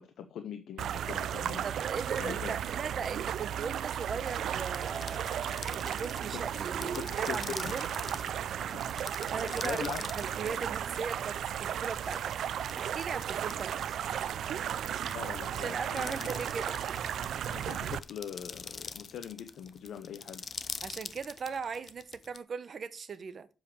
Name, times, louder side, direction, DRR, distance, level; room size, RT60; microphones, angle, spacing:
voice 1, 0.0-1.7 2.2-2.6 6.3-7.8 8.6-8.8 9.4-10.0 15.1-16.3 17.5-20.4, left 8 dB, 85° left, 0.8 m, -42 dB
sound 1, 0.8-18.0, right 9 dB, 75° right, 0.4 m, -35 dB
voice 2, 1.6-7.9 9.0-14.4 15.0-15.3 15.6-17.0 20.8-23.5, right 5 dB, 45° right, 0.8 m, -39 dB
sound 2, 4.2-22.4, left 5 dB, 40° left, 0.6 m, -45 dB
7.3 x 5.1 x 6.7 m
cardioid pair, 140°, 0 cm